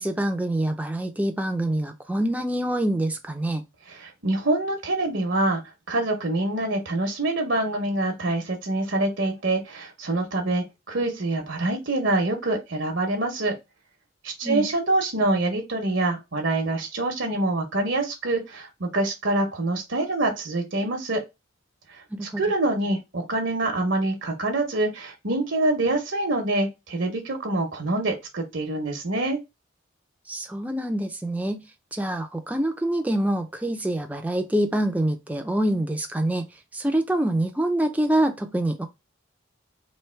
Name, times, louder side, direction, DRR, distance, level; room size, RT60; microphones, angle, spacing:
voice 1, 0.0-3.6 14.4-14.7 22.1-22.4 30.3-31.6 31.9-36.5 36.7-38.9, right 1 dB, 10° right, 0.5 m, -25 dB
voice 2, 3.9-5.6 5.9-13.5 14.2-21.2 22.4-29.4, right 2 dB, 70° right, 0.9 m, -25 dB
3.2 x 2.8 x 4.4 m
head